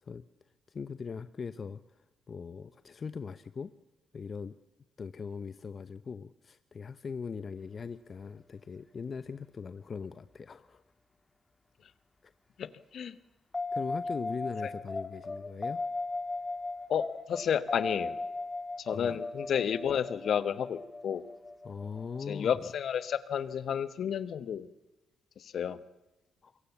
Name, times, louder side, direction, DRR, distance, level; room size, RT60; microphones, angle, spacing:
voice 1, 0.7-3.7 4.1-4.6 5.0-10.8 12.2-12.3 13.7-15.8 18.9-19.2 21.6-22.7 26.4-26.6, left 5 dB, 45° left, 13 dB, 0.8 m, -40 dB
voice 2, 12.6-13.1 16.9-18.2 18.8-21.2 22.3-24.7 25.4-25.8, left 8 dB, 60° left, 15 dB, 1.1 m, -31 dB
sound 1, 13.5-23.7, left 3 dB, 25° left, 1.9 m, -38 dB
26.0 x 23.0 x 7.2 m, 1.0 s
hypercardioid pair, 50°, 0 cm